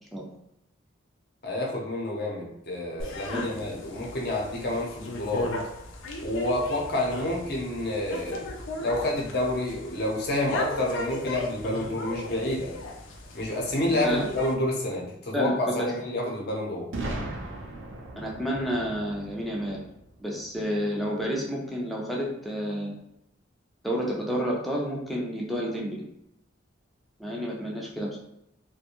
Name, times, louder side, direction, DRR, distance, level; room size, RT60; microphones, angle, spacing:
voice 1, 1.4-5.5 6.2-8.4 8.8-12.7 13.3-16.9, left 1 dB, 55° left, -2 dB, 0.7 m, -29 dB
sound 1, 3.0-14.5, left 2 dB, 85° left, 0.5 m, -37 dB
voice 2, 15.3-15.9 18.2-19.8 20.2-23.0 23.8-26.0 27.2-28.2, equal, ahead, -3 dB, 0.4 m, -30 dB
Boom, 16.9-20.8, right 2 dB, 80° right, 0.5 m, -38 dB
2.5 x 2.2 x 2.9 m, 0.83 s
head